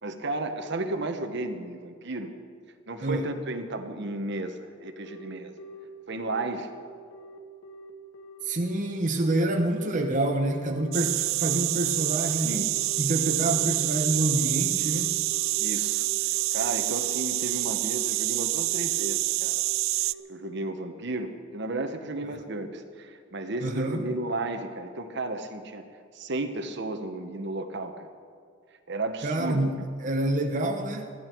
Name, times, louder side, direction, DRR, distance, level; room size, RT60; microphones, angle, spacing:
voice 1, 0.0-2.3 2.9-5.5 6.1-6.7 12.4-12.8 15.6-16.0 16.5-19.6 20.3-25.8 26.1-28.1 28.9-29.7, right 2 dB, 60° right, 7 dB, 1.2 m, -33 dB
Telephone, 5.1-21.2, left 1 dB, 75° left, 1.7 m, -45 dB
voice 2, 8.4-12.6 13.0-15.1 23.6-24.0 29.2-31.1, right 1 dB, 40° right, 2 dB, 1.0 m, -27 dB
sound 1, 10.9-20.1, right 18 dB, 85° right, 0.3 m, -27 dB
21.0 x 14.5 x 4.6 m, 2.1 s
head